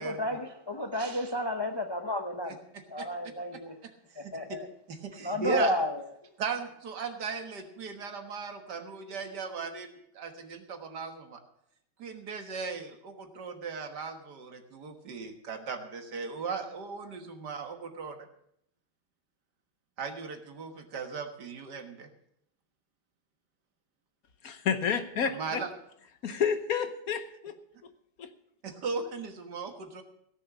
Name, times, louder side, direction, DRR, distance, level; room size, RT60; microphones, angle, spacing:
voice 1, 0.0-2.6 2.9-3.8 4.2-4.7 5.2-6.1, left 1 dB, 30° left, 5 dB, 0.4 m, -31 dB
voice 2, 2.4-3.1 3.8-4.3 4.9-5.7 6.4-11.4 12.0-18.2 20.0-22.1 25.2-25.7 28.6-30.0, right 5 dB, 70° right, 5 dB, 2.0 m, -38 dB
voice 3, 24.4-25.6 26.2-27.5 28.2-28.3, left 7 dB, 60° left, 9 dB, 1.3 m, -30 dB
16.5 x 7.1 x 7.2 m, 0.74 s
omnidirectional pair, 1.9 m